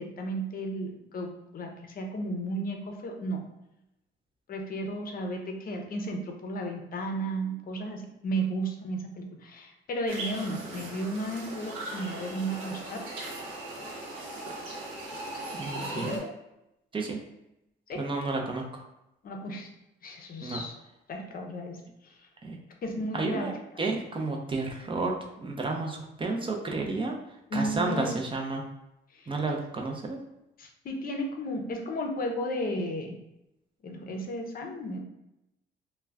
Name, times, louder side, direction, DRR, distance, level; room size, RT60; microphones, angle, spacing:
voice 1, 0.0-3.4 4.5-13.0 15.8-16.3 17.9-18.0 19.2-19.7 20.0-20.7 21.1-21.8 22.0-22.3 22.8-23.5 27.5-28.1 29.1-29.3 30.6-33.1 33.8-35.0, right 1 dB, 45° left, 3 dB, 0.6 m, -34 dB
sound 1, 10.1-16.2, right 2 dB, 75° right, 0.8 m, -38 dB
voice 2, 15.5-16.2 16.9-17.2 17.9-18.8 20.4-20.6 22.4-22.6 23.1-23.5 23.8-27.2 27.5-28.6 29.3-30.2, right 3 dB, 25° right, 1 dB, 0.5 m, -31 dB
2.3 x 2.2 x 3.3 m, 0.88 s
cardioid pair, 90°, 20 cm